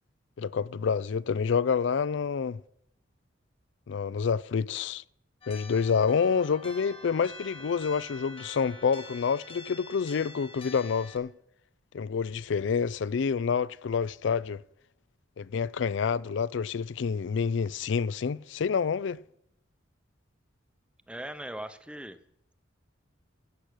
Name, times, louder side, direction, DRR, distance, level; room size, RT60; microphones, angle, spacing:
voice 1, 0.4-2.6 3.9-5.0 5.5-11.3 11.9-14.6 15.4-19.2, left 6 dB, 65° left, 0.4 m, -28 dB
sound 1, 5.4-11.2, left 3 dB, 30° left, 1.4 m, -46 dB
voice 2, 21.1-22.2, right 1 dB, 5° right, 0.7 m, -39 dB
15.0 x 6.1 x 8.2 m
head